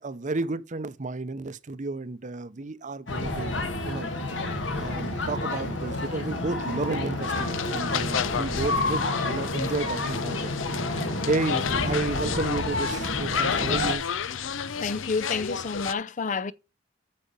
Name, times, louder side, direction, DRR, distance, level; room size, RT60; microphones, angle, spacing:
voice 1, 0.0-3.5 3.8-4.1 4.7-10.5 11.3-14.0, right 3 dB, 40° right, 0.7 m, -32 dB
sound 1, 3.1-14.0, left 2 dB, 75° left, 2.0 m, -29 dB
sound 2, 7.2-15.9, left 8 dB, 90° left, 0.7 m, -32 dB
voice 2, 14.8-16.5, left 4 dB, 40° left, 0.5 m, -29 dB
8.6 x 6.4 x 5.4 m
head